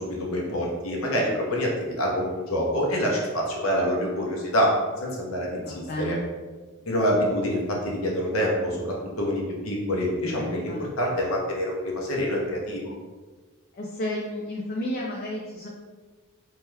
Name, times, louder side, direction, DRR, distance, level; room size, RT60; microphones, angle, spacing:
voice 1, 0.0-4.7 5.0-6.2 6.9-13.0, equal, 70° left, -2 dB, 0.8 m, -26 dB
voice 2, 5.5-6.2 10.3-10.8 13.7-15.7, left 1 dB, 45° left, -3 dB, 0.4 m, -32 dB
2.8 x 2.3 x 3.2 m, 1.3 s
head